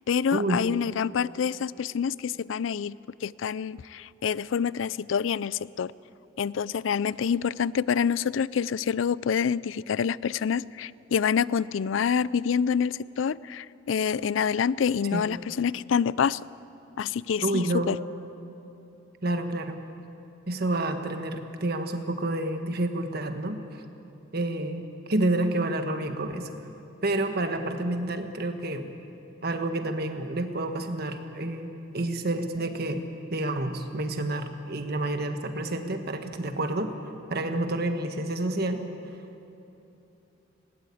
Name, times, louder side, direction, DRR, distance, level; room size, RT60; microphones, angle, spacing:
voice 1, 0.1-5.9 6.4-16.4 17.0-18.0, left 7 dB, 85° left, 20 dB, 0.4 m, -27 dB
voice 2, 17.4-17.9 19.2-19.8 20.5-23.8 24.3-26.5 27.0-28.9 29.4-33.0 33.3-36.9 37.3-38.8, right 2 dB, 55° right, 6 dB, 1.5 m, -29 dB
20.0 x 18.0 x 8.5 m, 2.9 s
head